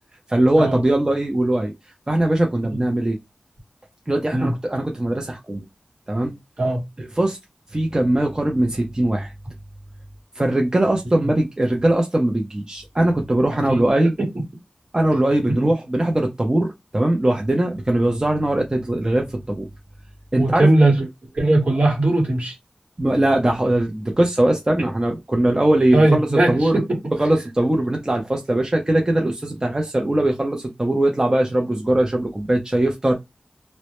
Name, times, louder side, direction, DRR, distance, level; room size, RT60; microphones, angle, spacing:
voice 1, 0.3-1.7 2.1-3.2 4.1-5.6 6.1-6.3 7.2-7.4 7.7-9.3 10.4-14.2 14.9-19.7 20.3-20.7 23.0-26.8 27.2-33.1, right 1 dB, 25° right, 0.5 m, -20 dB
voice 2, 20.4-21.1 21.3-22.5 25.9-27.0, right 2 dB, 60° right, 1.1 m, -19 dB
2.1 x 2.0 x 2.9 m
wide cardioid pair, 50°, 3 cm